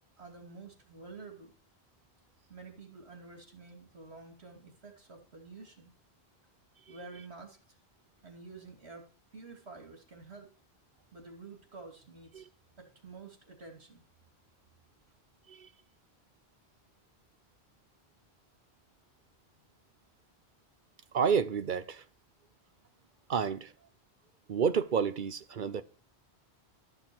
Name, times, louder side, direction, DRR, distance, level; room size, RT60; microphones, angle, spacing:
voice 1, 0.2-1.5 2.5-5.9 6.9-7.6 8.2-9.1 9.3-10.5 11.1-12.4 12.8-14.0, right 3 dB, 90° right, 2.9 m, -49 dB
voice 2, 21.1-22.0 23.3-23.7 24.5-25.8, right 6 dB, 55° right, 0.9 m, -30 dB
13.0 x 6.7 x 6.1 m
omnidirectional pair, 1.1 m